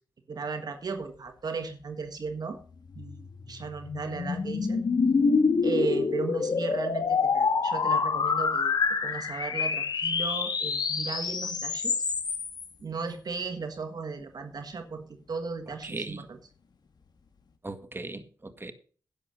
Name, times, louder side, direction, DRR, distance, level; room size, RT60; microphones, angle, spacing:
voice 1, 0.3-2.6 3.0-4.8 5.6-8.7 9.0-12.0 12.8-16.4, right 4 dB, 60° right, 6 dB, 1.5 m, -36 dB
sound 1, 2.9-12.7, left 5 dB, 65° left, 1.6 m, -27 dB
voice 2, 15.8-16.2 17.6-18.7, right 2 dB, 30° right, 9 dB, 1.7 m, -38 dB
11.0 x 7.0 x 6.3 m, 0.42 s
cardioid pair, 50°, 8 cm